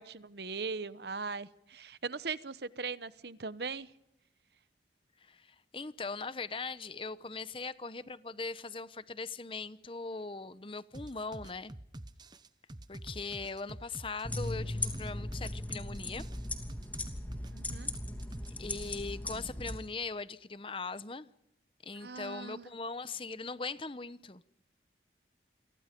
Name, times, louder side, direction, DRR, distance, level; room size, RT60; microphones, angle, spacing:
voice 1, 0.0-3.9 17.5-17.9 22.0-22.7, right 4 dB, 65° right, 1.0 m, -39 dB
voice 2, 5.2-11.7 12.9-16.3 18.6-21.3 21.8-24.4, left 4 dB, 30° left, 0.9 m, -40 dB
sound 1, 10.9-18.9, right 1 dB, 25° right, 0.9 m, -47 dB
sound 2, 14.2-19.8, left 2 dB, 10° left, 2.8 m, -38 dB
29.0 x 24.5 x 5.3 m
head